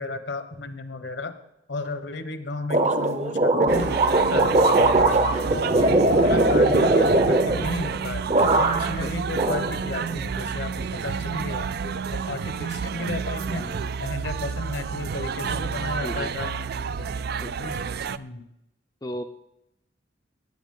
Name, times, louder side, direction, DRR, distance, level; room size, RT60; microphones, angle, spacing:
voice 1, 0.0-1.3 1.7-5.1 5.5-8.2 8.5-10.7 11.0-13.7 14.0-17.1 17.6-17.8 18.2-18.4, left 2 dB, 65° left, 9 dB, 1.1 m, -33 dB
sound 1, 2.7-8.0 8.3-9.0 9.3-10.2, right 2 dB, 35° right, 0.9 m, -20 dB
sound 2, 3.7-18.2, right 6 dB, 55° right, 0.4 m, -30 dB
voice 2, 5.8-6.2 7.5-7.7 8.5-8.6 9.0-9.1 10.8-10.9 13.5-13.7 16.0-16.3 17.4-17.5 19.0-19.2, left 1 dB, 20° left, 5 dB, 0.5 m, -35 dB
18.0 x 8.1 x 3.8 m, 0.82 s
head